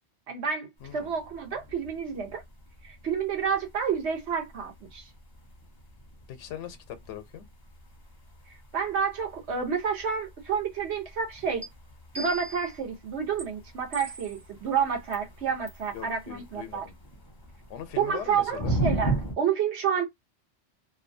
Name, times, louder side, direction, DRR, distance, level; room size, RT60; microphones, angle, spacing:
voice 1, 0.3-2.4 2.8-5.1 8.7-11.7 12.1-16.8 18.0-20.0, right 7 dB, 70° right, 1.1 m, -29 dB
voice 2, 0.8-1.1 6.3-7.5 15.9-16.9 17.7-18.8, left 10 dB, 85° left, 0.9 m, -40 dB
sound 1, 0.8-19.4, right 2 dB, 25° left, 0.5 m, -38 dB
sound 2, 11.6-11.7 12.1-12.8 13.4-13.5 13.9-14.4 15.1-15.2 15.7-15.9, right 2 dB, 35° right, 0.5 m, -40 dB
2.6 x 2.2 x 2.6 m
omnidirectional pair, 1.2 m